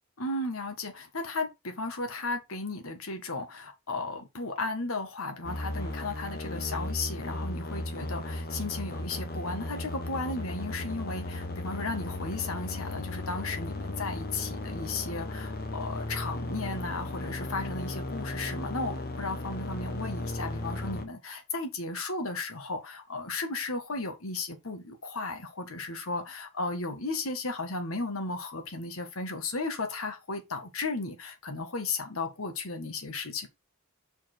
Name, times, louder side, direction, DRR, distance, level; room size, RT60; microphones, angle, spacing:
voice 1, 0.2-33.5, left 3 dB, 75° left, 1.7 m, -35 dB
sound 1, 5.4-21.1, left 1 dB, 45° left, 1.1 m, -36 dB
5.7 x 4.9 x 4.4 m
head